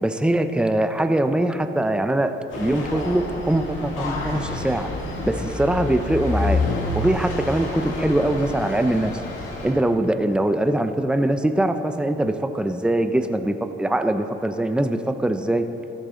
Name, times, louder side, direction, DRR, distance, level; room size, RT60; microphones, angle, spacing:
voice 1, 0.0-4.9 5.2-6.6 6.9-9.1 9.6-15.7, right 1 dB, 5° right, 8 dB, 0.7 m, -22 dB
sound 1, 2.5-9.7, left 2 dB, 85° left, 2.2 m, -28 dB
13.5 x 13.0 x 3.8 m, 3.0 s
cardioid pair, 90°, 20 cm